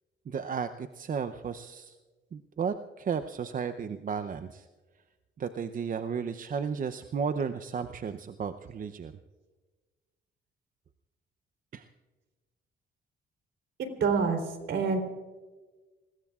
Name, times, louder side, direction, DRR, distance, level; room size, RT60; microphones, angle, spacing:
voice 1, 0.3-1.9 2.3-4.7 5.4-9.1 11.7-11.9, right 6 dB, 45° right, 9 dB, 0.7 m, -34 dB
voice 2, 13.8-14.4 14.7-15.0, right 5 dB, 70° right, 5 dB, 3.5 m, -26 dB
28.0 x 21.0 x 2.4 m, 1.3 s
cardioid pair, 90°, 20 cm